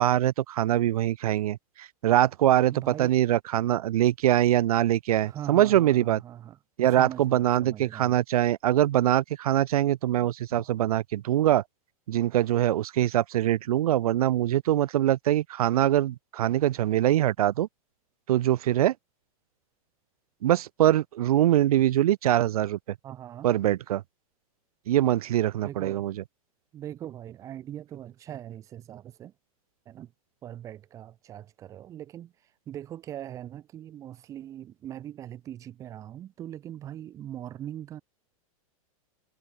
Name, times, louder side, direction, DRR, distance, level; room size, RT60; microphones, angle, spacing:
voice 1, 0.0-6.2 6.8-11.6 12.1-17.7 18.3-18.9 20.4-22.8 23.4-24.0 24.9-26.1, right 13 dB, 85° right, 0.8 m, -23 dB
voice 2, 2.7-3.2 5.2-6.6 7.0-8.2 10.5-10.7 23.0-23.5 25.6-26.1 26.7-29.3 29.8-30.1 30.4-38.0, right 11 dB, 15° right, 3.3 m, -41 dB
supercardioid pair, 180°, 18 cm